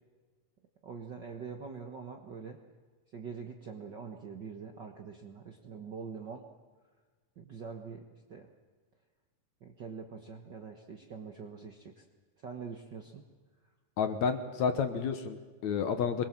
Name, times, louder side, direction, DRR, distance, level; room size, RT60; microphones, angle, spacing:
voice 1, 0.8-2.6 3.1-6.5 7.4-8.5 9.6-12.0 12.4-13.2, right 5 dB, 55° right, 4 dB, 1.3 m, -44 dB
voice 2, 14.0-16.3, left 6 dB, 65° left, 8 dB, 2.4 m, -30 dB
23.5 x 22.5 x 7.5 m, 1.4 s
omnidirectional pair, 3.8 m